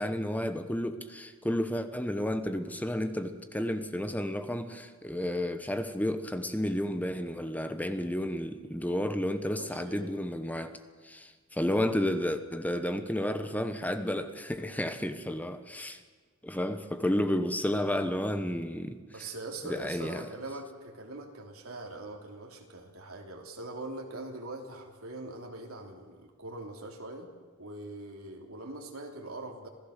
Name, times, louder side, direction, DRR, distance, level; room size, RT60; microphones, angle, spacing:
voice 1, 0.0-10.8 11.0-16.0 16.4-19.0 19.6-20.2, left 1 dB, 10° left, 1.1 m, -31 dB
voice 2, 9.6-10.1 19.1-27.3 27.6-29.7, right 2 dB, 75° right, 3.2 m, -42 dB
26.5 x 16.5 x 6.6 m
head